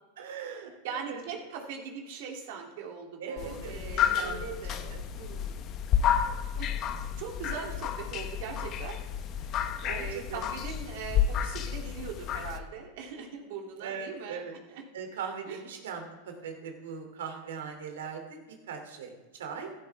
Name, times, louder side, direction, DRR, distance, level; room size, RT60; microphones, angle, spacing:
voice 1, 0.2-1.2 3.2-4.5 4.9-5.0 6.2-6.4 9.8-10.4 13.8-14.5 14.9-19.7, right 6 dB, 80° right, 4 dB, 2.9 m, -40 dB
voice 2, 0.8-5.7 6.6-6.7 7.2-9.0 9.9-14.4 14.7-14.8 15.5-15.6, right 6 dB, 65° right, 0 dB, 2.9 m, -40 dB
sound 1, 3.4-12.6, left 9 dB, 40° left, 0.9 m, -31 dB
13.5 x 12.5 x 3.5 m, 1.2 s
hypercardioid pair, 125°, 0 cm